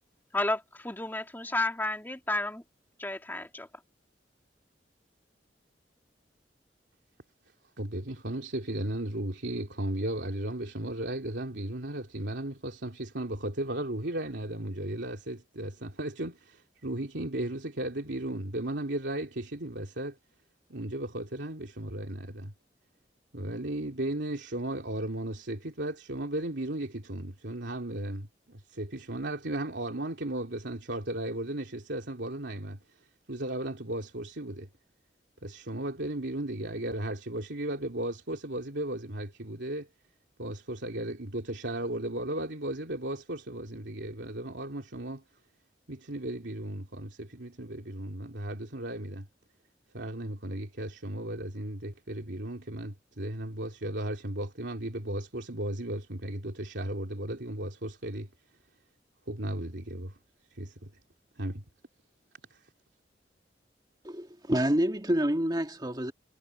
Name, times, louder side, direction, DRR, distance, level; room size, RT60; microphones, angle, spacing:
voice 1, 0.3-2.6 3.0-3.7, left 2 dB, 10° left, 2.5 m, -31 dB
voice 2, 7.8-20.2 20.7-22.5 23.3-32.8 33.3-34.7 35.4-39.9 40.4-45.2 45.9-49.3 49.9-58.3 59.3-60.2 60.5-60.9 61.4-61.6 62.5-62.6, right 1 dB, 90° right, 2.9 m, -35 dB
voice 3, 64.0-66.1, equal, 25° right, 2.0 m, -28 dB
head